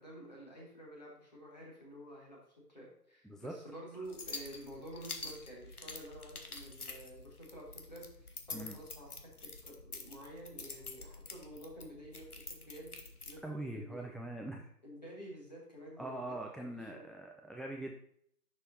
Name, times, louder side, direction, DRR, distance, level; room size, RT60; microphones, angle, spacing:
voice 1, 0.0-2.4 2.7-12.9 13.2-14.2 14.8-16.4 16.7-17.1, right 1 dB, 25° left, -3 dB, 1.7 m, -50 dB
voice 2, 3.2-3.5 8.5-8.8 13.4-14.7 16.0-17.9, right 1 dB, ahead, 1 dB, 0.4 m, -42 dB
sound 1, 4.1-13.4, left 3 dB, 65° left, 1.2 m, -47 dB
10.0 x 6.3 x 2.6 m, 0.70 s
figure-of-eight pair, 175°, 49 cm